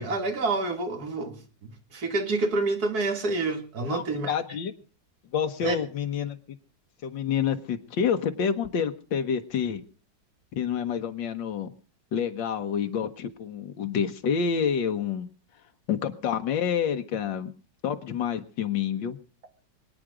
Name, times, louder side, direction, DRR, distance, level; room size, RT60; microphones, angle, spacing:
voice 1, 0.0-1.4 1.9-4.3 5.6-5.8, right 3 dB, 55° right, 6 dB, 2.5 m, -27 dB
voice 2, 3.9-4.7 5.3-6.4 7.0-9.8 10.6-11.7 12.1-15.3 15.9-17.5 17.8-19.2, left 7 dB, 85° left, 6 dB, 1.8 m, -28 dB
24.0 x 9.1 x 4.9 m, 0.38 s
omnidirectional pair, 1.9 m